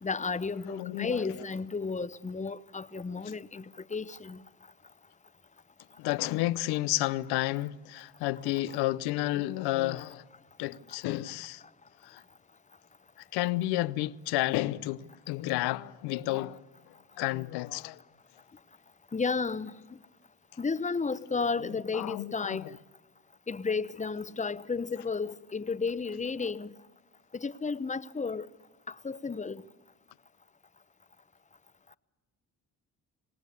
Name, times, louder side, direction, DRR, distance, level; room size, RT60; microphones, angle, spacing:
voice 1, 0.0-4.4 19.1-20.0 20.6-22.7 23.5-26.7 27.3-28.5 28.9-29.6, left 4 dB, 20° left, 0.9 m, -33 dB
voice 2, 0.7-1.3 6.0-10.3 10.6-11.6 12.0-12.2 13.2-18.0 21.6-22.7, left 17 dB, 90° left, 0.7 m, -31 dB
26.5 x 18.5 x 8.3 m
supercardioid pair, 60°, 37 cm